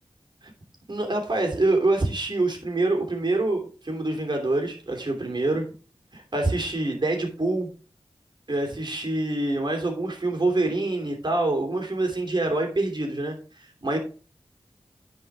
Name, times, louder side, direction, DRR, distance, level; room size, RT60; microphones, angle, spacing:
voice 1, 0.9-5.7 6.1-7.7 8.5-13.4 13.8-14.0, right 2 dB, 50° right, 2 dB, 3.0 m, -25 dB
10.5 x 4.9 x 4.9 m, 0.37 s
wide cardioid pair, 65°, 10 cm